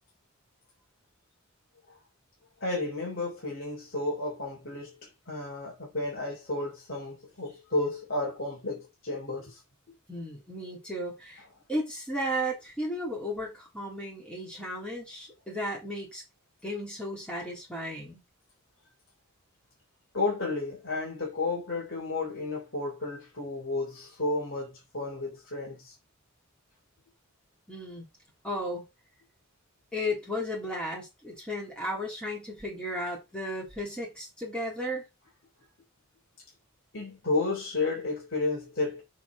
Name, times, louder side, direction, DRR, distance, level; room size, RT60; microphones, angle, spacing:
voice 1, 2.6-9.6 20.1-25.9 36.9-39.0, left 2 dB, 55° left, 3.5 m, -32 dB
voice 2, 10.1-11.4 11.7-16.2 16.6-18.2 27.7-28.1 28.4-28.8 29.9-35.0, equal, 5° left, 3.7 m, -34 dB
6.9 x 5.9 x 4.0 m
head